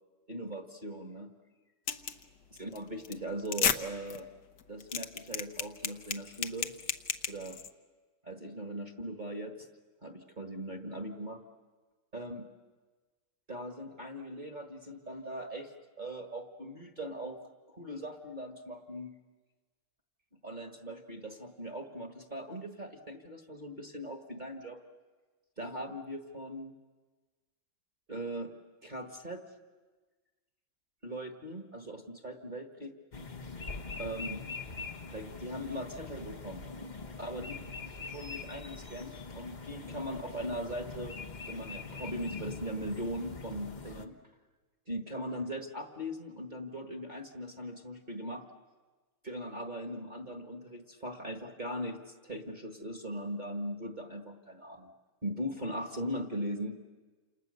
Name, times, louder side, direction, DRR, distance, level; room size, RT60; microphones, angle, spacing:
voice 1, 0.3-1.3 2.6-4.3 4.7-6.7 7.3-7.6 8.2-9.7 10.0-11.4 12.1-12.5 13.5-15.7 16.0-17.4 17.7-19.2 20.4-24.8 25.6-26.7 28.1-28.5 28.8-29.4 31.0-32.9 34.0-34.4 35.1-36.6 37.2-37.7 38.1-41.2 41.5-44.1 44.9-48.4 49.2-52.0 52.2-54.9 55.2-56.8, equal, 25° right, 3 dB, 1.8 m, -39 dB
sound 1, 1.9-2.2 2.6-2.8 3.0-3.1 3.4-3.8 4.1-4.2 4.6-7.7, left 8 dB, 55° left, 1.5 m, -32 dB
sound 2, 33.1-44.1, left 4 dB, 30° left, 0.9 m, -43 dB
29.5 x 28.0 x 6.8 m, 1.3 s
omnidirectional pair, 2.4 m